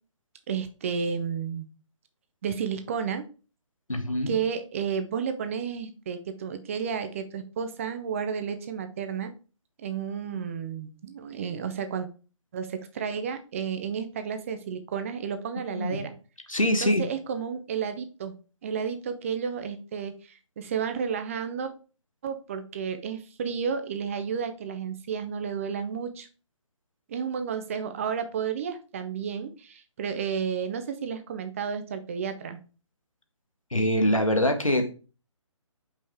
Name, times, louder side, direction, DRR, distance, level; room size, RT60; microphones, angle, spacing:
voice 1, 0.5-1.7 2.4-3.3 4.3-9.3 9.8-12.1 12.5-16.1 16.8-18.4 18.6-21.7 22.2-26.3 27.1-32.6, right 7 dB, 25° right, 9 dB, 0.6 m, -32 dB
voice 2, 3.9-4.3 15.7-16.0 16.5-17.0 33.7-34.9, left 1 dB, 85° left, 5 dB, 1.5 m, -24 dB
5.5 x 5.3 x 3.5 m, 0.34 s
figure-of-eight pair, 145°, 17 cm